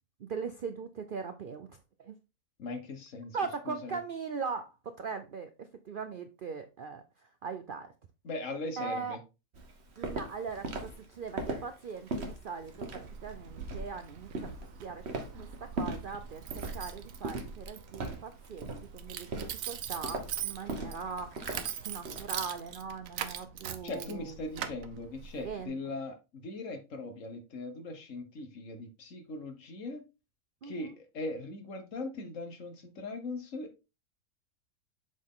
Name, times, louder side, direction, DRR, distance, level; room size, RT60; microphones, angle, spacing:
voice 1, 0.2-2.2 3.3-7.9 8.8-9.2 10.0-14.3 14.8-15.0 15.4-21.4 21.8-24.4 25.4-25.8 30.6-30.9, right 5 dB, 90° right, 0.4 m, -40 dB
voice 2, 2.6-3.4 3.7-4.0 8.2-9.2 23.8-30.0 30.6-33.8, left 2 dB, 55° left, 1.4 m, -40 dB
Walk footsteps, 9.5-22.3, right 2 dB, 45° right, 1.4 m, -39 dB
Keys jangling, 12.6-25.7, right 8 dB, 65° right, 1.1 m, -42 dB
7.3 x 4.1 x 3.7 m
omnidirectional pair, 1.6 m